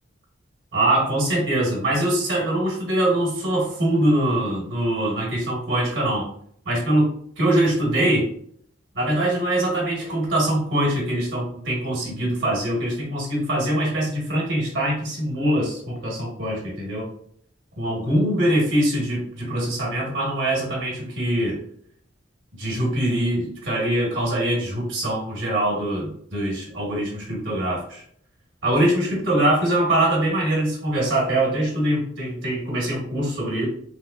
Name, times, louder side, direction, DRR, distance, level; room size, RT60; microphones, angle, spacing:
voice 1, 0.7-6.3 6.6-7.1 7.4-8.3 8.9-17.1 17.8-21.6 22.6-28.0 28.6-33.6, right 1 dB, 70° right, -3 dB, 1.1 m, -23 dB
3.3 x 3.0 x 2.3 m, 0.65 s
head